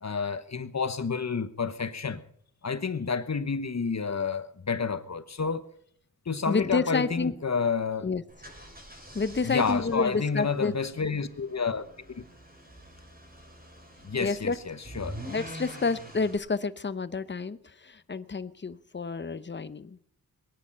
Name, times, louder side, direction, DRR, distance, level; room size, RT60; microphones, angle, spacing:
voice 1, 0.0-2.2 2.6-5.7 6.3-8.1 9.4-11.8 12.2-12.3 14.0-15.2, left 5 dB, 45° left, 1.2 m, -30 dB
voice 2, 6.5-7.3 8.0-8.2 9.1-10.7 14.2-14.6 15.3-20.0, left 4 dB, 30° left, 0.8 m, -29 dB
sound 1, 8.3-16.4, equal, 25° right, 6.6 m, -46 dB
22.5 x 9.9 x 5.7 m
wide cardioid pair, 80°, 37 cm